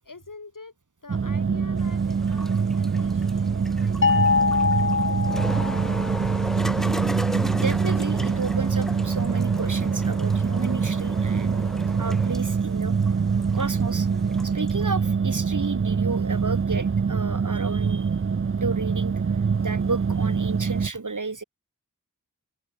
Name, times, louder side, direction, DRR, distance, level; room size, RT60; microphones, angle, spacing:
voice 1, 0.0-0.7 1.0-4.5 5.1-7.8, left 3 dB, 75° left, 5.9 m, -47 dB
sound 1, 1.1-20.9, right 5 dB, 40° right, 0.6 m, -24 dB
sound 2, 1.8-14.9, equal, ahead, 5.2 m, -36 dB
sound 3, 4.0-6.3, left 5 dB, 40° left, 0.7 m, -23 dB
voice 2, 7.6-13.0 13.5-14.1 14.4-18.1 18.6-19.2 19.6-21.4, right 3 dB, 70° right, 3.8 m, -32 dB
open air
wide cardioid pair, 45°, 32 cm